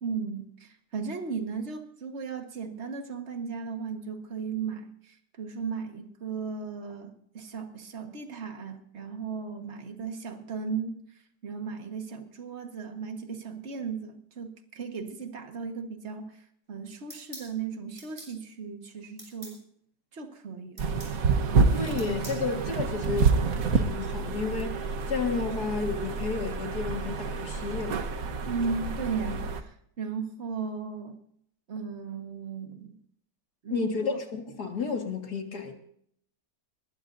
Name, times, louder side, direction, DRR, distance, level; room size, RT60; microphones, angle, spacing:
voice 1, 0.0-11.0 11.4-16.4 16.7-19.6 20.1-20.9 28.5-31.2 31.7-33.0 33.6-34.2, right 5 dB, 40° right, 1.7 m, -36 dB
sound 1, 17.1-17.5 18.0-18.3 19.2-19.6 20.8-21.2 22.0-22.4, right 1 dB, 25° right, 6.0 m, -45 dB
sound 2, 20.8-29.6, right 4 dB, 55° right, 1.4 m, -28 dB
voice 2, 21.7-23.4 23.7-28.0 33.7-35.7, left 5 dB, 65° left, 2.4 m, -32 dB
20.5 x 20.5 x 2.7 m
omnidirectional pair, 1.9 m